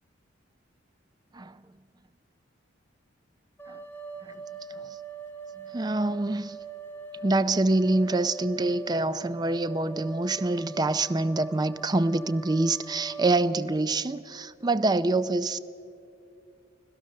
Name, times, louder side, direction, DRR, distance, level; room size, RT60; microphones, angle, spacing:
sound 1, 3.6-13.4, right 5 dB, 10° left, 1.7 m, -42 dB
voice 1, 5.7-6.6 7.2-15.6, right 2 dB, 20° right, 0.5 m, -26 dB
25.0 x 16.5 x 6.5 m
head